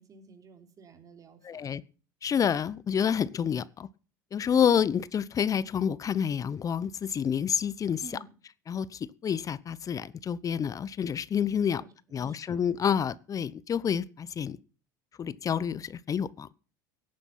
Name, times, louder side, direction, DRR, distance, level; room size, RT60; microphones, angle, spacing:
voice 1, 0.0-1.7 8.0-8.3 11.8-12.5, right 5 dB, 35° right, 3.5 m, -51 dB
voice 2, 1.4-1.8 2.2-3.9 4.3-8.0 8.7-11.8 12.1-14.6 15.2-16.5, left 8 dB, 35° left, 0.8 m, -28 dB
17.0 x 9.8 x 5.7 m
hypercardioid pair, 75°, 11 cm